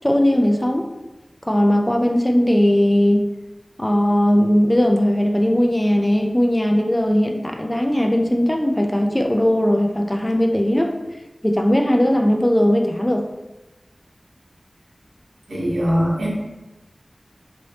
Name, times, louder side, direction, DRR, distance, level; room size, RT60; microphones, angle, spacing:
voice 1, 0.0-0.9 1.5-3.3 3.8-11.0 11.4-13.2, equal, 15° left, 2 dB, 0.3 m, -18 dB
voice 2, 15.5-16.3, equal, 80° right, -4 dB, 0.9 m, -21 dB
3.0 x 2.6 x 3.2 m, 1.0 s
wide cardioid pair, 70°, 0 cm